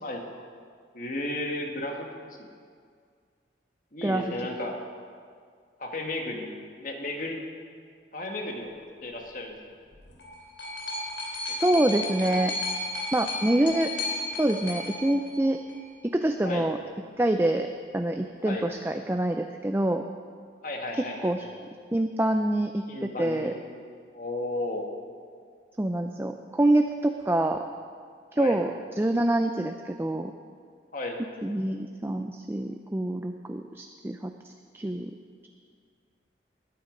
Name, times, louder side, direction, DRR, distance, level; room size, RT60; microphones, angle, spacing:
voice 1, 0.0-0.3 0.9-2.1 2.4-2.5 3.9-4.9 5.8-6.5 6.8-7.4 8.1-8.7 9.0-9.6 11.7-11.8 16.4-16.7 18.5-18.7 20.6-21.5 22.9-23.6 24.1-24.9 28.4-28.6 30.9-31.2, left 1 dB, 45° left, 2 dB, 1.7 m, -34 dB
sound 1, 9.9-15.9 16.8-16.9, left 2 dB, 80° left, 3.0 m, -34 dB
voice 2, 11.4-12.5 13.1-13.9 14.4-15.6 16.1-16.8 17.2-17.7 17.9-20.0 21.0-21.5 21.9-23.5 25.8-27.6 28.3-28.7 29.0-30.3 31.4-34.3 34.7-35.1, right 1 dB, 15° right, 5 dB, 0.4 m, -26 dB
20.0 x 9.6 x 5.2 m, 2.1 s
head